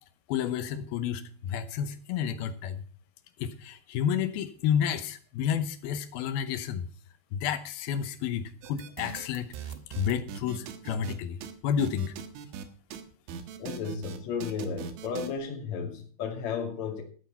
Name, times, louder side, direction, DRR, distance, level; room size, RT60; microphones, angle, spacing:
voice 1, 0.3-2.8 3.4-6.9 7.3-11.4 11.6-12.1, left 8 dB, 80° left, 2.2 m, -30 dB
sound 1, 8.6-11.2 11.4-11.5 11.8-12.7 12.9-13.0 13.3-15.3, right 7 dB, 90° right, 3.8 m, -40 dB
voice 2, 13.6-17.0, left 6 dB, 45° left, 3.2 m, -34 dB
13.5 x 9.0 x 5.8 m
omnidirectional pair, 5.4 m